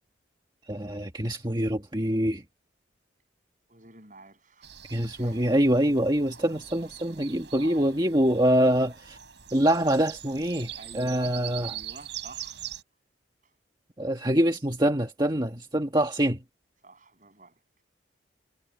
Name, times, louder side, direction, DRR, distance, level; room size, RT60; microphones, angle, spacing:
voice 1, 0.7-2.4 4.9-9.2 9.5-11.7 14.0-16.4, right 1 dB, 25° right, 1.7 m, -25 dB
voice 2, 3.7-4.7 5.1-5.4 7.3-7.4 10.7-12.6 13.4-13.5 16.8-17.6, right 2 dB, 40° right, 7.7 m, -50 dB
sound 1, 4.6-12.8, right 10 dB, 65° right, 7.2 m, -42 dB
head